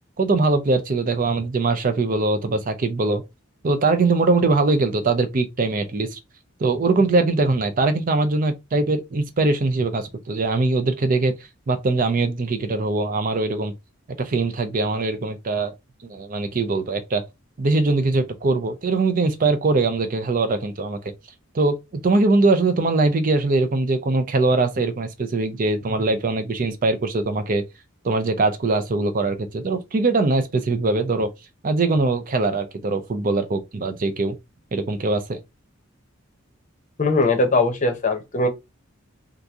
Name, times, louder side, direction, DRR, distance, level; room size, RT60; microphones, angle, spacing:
voice 1, 0.2-3.2 3.6-6.2 6.6-11.3 11.7-13.7 14.2-15.7 16.0-17.2 17.6-21.1 21.5-27.6 28.0-31.3 31.6-34.4 34.7-35.4, right 3 dB, 40° right, 0.5 m, -22 dB
voice 2, 37.0-38.5, left 2 dB, 35° left, 0.7 m, -20 dB
2.9 x 2.5 x 3.5 m
head